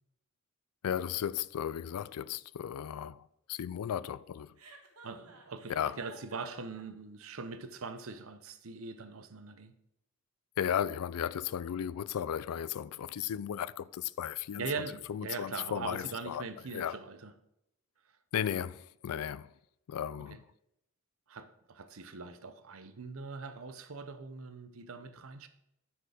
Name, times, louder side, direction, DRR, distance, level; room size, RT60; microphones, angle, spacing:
voice 1, 0.8-4.5 5.7-6.0 10.6-14.6 15.1-16.4 16.7-17.0 18.3-19.5 19.9-20.4, left 9 dB, 90° left, 0.3 m, -35 dB
Chuckle chortle, 4.6-6.8, right 3 dB, 85° right, 1.4 m, -53 dB
voice 2, 5.0-9.8 14.6-17.3 18.5-18.6 20.3-20.4 21.3-25.5, right 4 dB, 65° right, 0.7 m, -42 dB
10.0 x 4.7 x 4.9 m
head